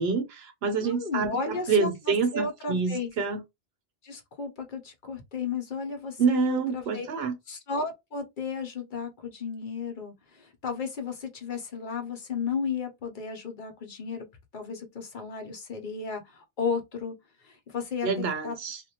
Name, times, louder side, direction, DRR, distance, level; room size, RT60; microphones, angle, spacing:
voice 1, 0.0-3.4 6.2-7.3 18.0-18.8, right 5 dB, 80° right, 0.9 m, -27 dB
voice 2, 0.8-3.1 4.0-7.1 7.5-14.3 14.5-17.1 17.4-18.1 18.4-18.6, left 5 dB, 55° left, 0.8 m, -34 dB
2.5 x 2.1 x 2.8 m
omnidirectional pair, 1.0 m